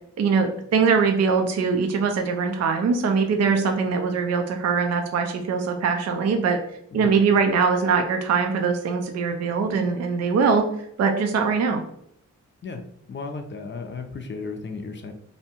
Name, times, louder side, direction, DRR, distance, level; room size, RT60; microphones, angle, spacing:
voice 1, 0.2-6.6 6.9-10.6 11.0-11.8, right 5 dB, 55° right, 5 dB, 0.5 m, -22 dB
voice 2, 13.1-15.1, left 4 dB, 40° left, 5 dB, 0.4 m, -34 dB
2.7 x 2.2 x 2.8 m, 0.72 s
cardioid pair, 75°, 31 cm